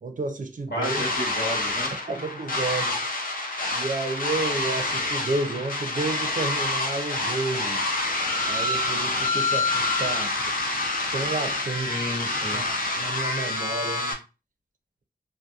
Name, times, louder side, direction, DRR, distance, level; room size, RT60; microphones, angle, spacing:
voice 1, 0.0-1.1 2.1-3.0 3.7-7.9 8.5-10.4 11.1-12.0 12.5-14.2, right 3 dB, 50° right, 0.5 m, -31 dB
voice 2, 0.7-1.9 11.7-12.6, left 1 dB, 75° left, 1.2 m, -32 dB
sound 1, 0.8-14.1, left 2 dB, 55° left, 0.5 m, -27 dB
2.7 x 2.1 x 2.3 m
wide cardioid pair, 95°, 17 cm